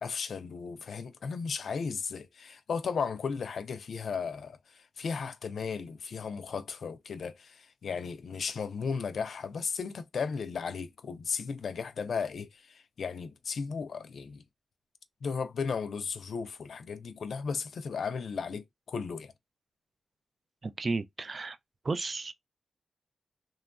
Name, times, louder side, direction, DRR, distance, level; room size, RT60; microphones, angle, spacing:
voice 1, 0.0-14.4 15.2-19.3, left 5 dB, 75° left, 0.4 m, -35 dB
voice 2, 20.6-21.6 21.8-22.3, right 3 dB, 45° right, 0.3 m, -33 dB
2.9 x 2.3 x 2.3 m
wide cardioid pair, 95°, 0 cm